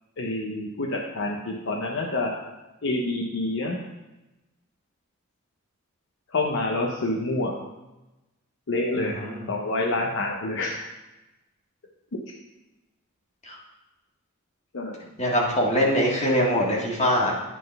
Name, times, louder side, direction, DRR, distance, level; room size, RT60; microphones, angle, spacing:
voice 1, 0.2-2.3 2.8-3.8 6.3-7.6 8.7-9.2 9.5-10.8 12.1-12.2 14.7-15.0, left 2 dB, 60° left, 0 dB, 0.7 m, -27 dB
voice 2, 9.0-9.5 13.4-13.6 15.2-17.3, equal, 35° left, -3 dB, 1.8 m, -23 dB
10.0 x 3.9 x 5.3 m, 1.0 s
head